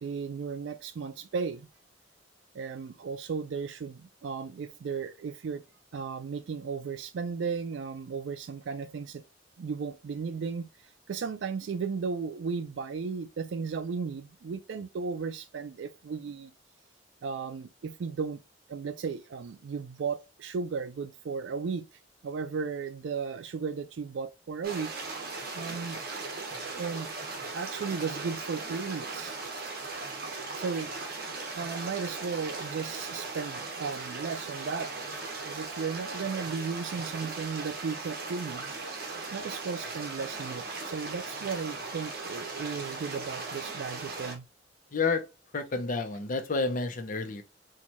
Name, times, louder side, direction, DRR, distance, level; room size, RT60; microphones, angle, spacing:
voice 1, 0.0-1.7 2.5-5.6 5.9-9.2 9.6-10.7 11.1-16.5 17.2-18.4 18.7-21.9 22.2-24.9 25.5-26.0 26.7-27.1 27.5-29.4 30.6-30.9 31.5-34.9 35.5-38.7 39.3-44.4, right 5 dB, 75° right, 0.4 m, -35 dB
sound 1, 24.6-44.3, right 3 dB, 55° right, 1.1 m, -38 dB
voice 2, 44.9-45.3 45.5-47.4, left 4 dB, 45° left, 0.6 m, -30 dB
4.3 x 2.3 x 3.0 m
head